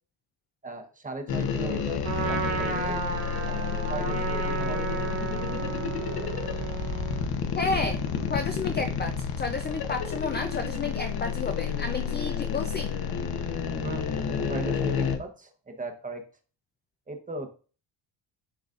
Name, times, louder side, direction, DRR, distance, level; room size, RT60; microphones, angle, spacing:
voice 1, 0.6-3.0 3.5-5.1 13.8-14.1 14.5-16.2 17.1-17.5, right 2 dB, 15° right, 5 dB, 0.8 m, -38 dB
sound 1, 1.3-15.2, left 6 dB, 50° left, 0.9 m, -30 dB
Trumpet, 2.0-7.3, right 6 dB, 75° right, 1.5 m, -33 dB
sound 2, 4.9-10.8, equal, 90° left, 3.4 m, -46 dB
voice 2, 7.5-8.0 8.3-12.9, left 4 dB, 25° left, 6 dB, 0.3 m, -31 dB
11.0 x 3.9 x 2.4 m, 0.37 s
cardioid pair, 155°, 47 cm